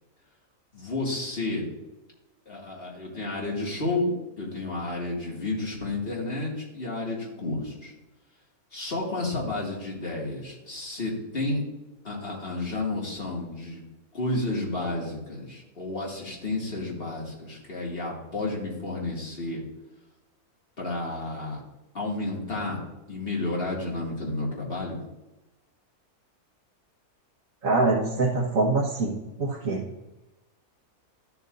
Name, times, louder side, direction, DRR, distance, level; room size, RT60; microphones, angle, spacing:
voice 1, 0.7-1.6 2.5-7.9 8.7-11.6 12.0-13.8 14.1-19.6 20.8-21.6 21.9-22.8 23.1-25.0, left 2 dB, 40° left, -4 dB, 2.5 m, -31 dB
voice 2, 27.6-29.1 29.4-29.8, right 3 dB, 60° right, -5 dB, 1.8 m, -24 dB
13.0 x 7.2 x 2.7 m, 1.0 s
omnidirectional pair, 1.6 m